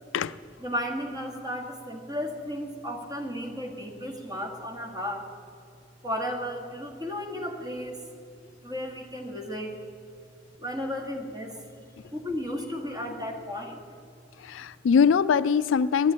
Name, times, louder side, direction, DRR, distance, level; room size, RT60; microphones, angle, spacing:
voice 1, 0.6-5.3 6.0-8.0 8.6-9.7 10.6-11.6 12.1-13.8, equal, 20° right, 2 dB, 1.5 m, -34 dB
voice 2, 14.4-16.1, left 6 dB, 80° left, 16 dB, 0.3 m, -22 dB
9.7 x 9.6 x 9.6 m, 2.6 s
head